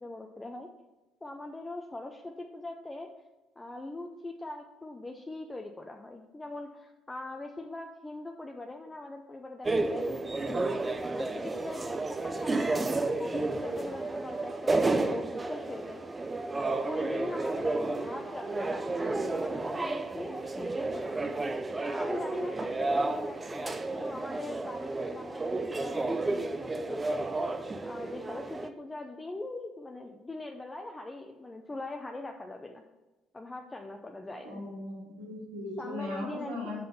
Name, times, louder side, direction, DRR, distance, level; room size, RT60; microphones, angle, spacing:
voice 1, 0.0-0.7 1.2-3.1 3.6-10.7 11.1-16.0 16.7-21.3 21.8-27.3 27.8-32.8 33.3-34.6 35.8-36.8, left 2 dB, 20° left, 3 dB, 0.6 m, -41 dB
sound 1, 9.6-28.7, right 2 dB, 25° right, 0.5 m, -32 dB
voice 2, 34.4-36.8, left 1 dB, 80° right, -3 dB, 1.8 m, -38 dB
5.6 x 5.2 x 5.3 m, 1.1 s
hypercardioid pair, 55°, 0 cm